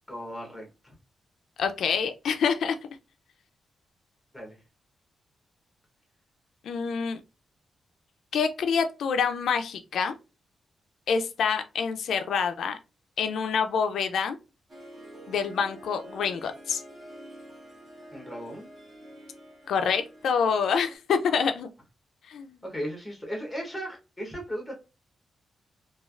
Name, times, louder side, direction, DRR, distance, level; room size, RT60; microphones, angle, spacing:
voice 1, 0.1-0.9 4.3-4.6 18.1-18.7 22.6-24.7, equal, 5° left, 0.8 m, -36 dB
voice 2, 1.6-2.8 6.6-7.2 8.3-10.1 11.1-12.8 13.2-14.4 15.3-16.8 19.7-21.7 22.3-22.6, left 6 dB, 80° left, 0.3 m, -26 dB
Harp, 14.7-21.0, equal, 35° right, 0.9 m, -47 dB
3.1 x 2.3 x 2.3 m
wide cardioid pair, 170°, 0 cm